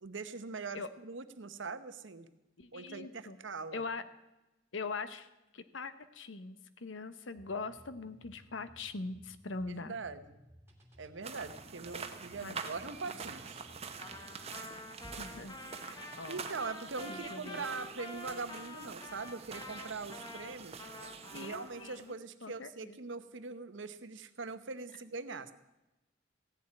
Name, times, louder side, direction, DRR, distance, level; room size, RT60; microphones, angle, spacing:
voice 1, 0.0-2.3 2.7-3.8 9.7-10.4 11.0-13.7 16.3-20.8 21.3-25.5, right 4 dB, 75° right, 11 dB, 0.9 m, -42 dB
voice 2, 2.6-3.4 3.7-4.0 4.7-5.3 5.5-10.0 12.4-12.5 15.2-16.4 17.1-17.6 21.3-22.1 22.4-23.0, left 3 dB, 80° left, 12 dB, 1.0 m, -42 dB
sound 1, 7.3-15.4, equal, 15° right, 2.4 m, -59 dB
sound 2, 11.2-22.1, right 5 dB, 35° right, 1.0 m, -46 dB
Trumpet, 14.0-22.0, left 2 dB, 20° left, 1.2 m, -48 dB
15.5 x 7.4 x 9.8 m, 0.98 s
head